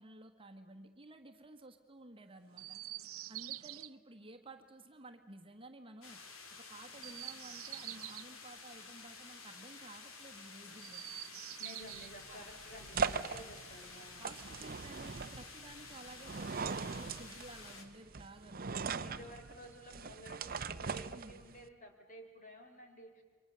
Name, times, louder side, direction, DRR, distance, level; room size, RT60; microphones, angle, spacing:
voice 1, 0.0-2.8 3.3-6.2 6.5-11.0 12.3-12.5 13.9-19.0 21.1-21.4, right 2 dB, 25° right, 4 dB, 1.5 m, -54 dB
Chirp tweet, 2.5-3.9 6.9-8.3 10.7-12.1 13.6-14.6 15.7-16.6, right 15 dB, 85° right, 0.7 m, -47 dB
sound 1, 6.0-17.9, left 4 dB, 85° left, 2.9 m, -52 dB
voice 2, 11.6-14.3 19.0-23.2, equal, 40° left, 5 dB, 3.6 m, -53 dB
sound 2, 11.8-21.7, right 5 dB, 45° right, 0.7 m, -40 dB
29.0 x 24.5 x 6.9 m, 1.4 s
head